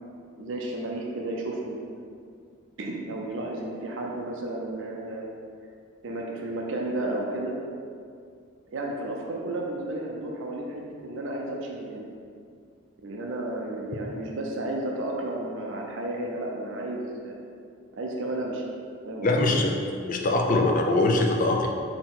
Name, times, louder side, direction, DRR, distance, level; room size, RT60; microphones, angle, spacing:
voice 1, 0.4-1.8 2.8-5.3 6.0-7.6 8.7-12.1 13.0-17.4 18.0-18.7 19.1-19.5, right 1 dB, 65° right, -1 dB, 0.5 m, -32 dB
voice 2, 19.2-19.7 20.1-21.7, left 2 dB, 40° left, 2 dB, 0.4 m, -22 dB
4.2 x 2.8 x 3.7 m, 2.3 s
head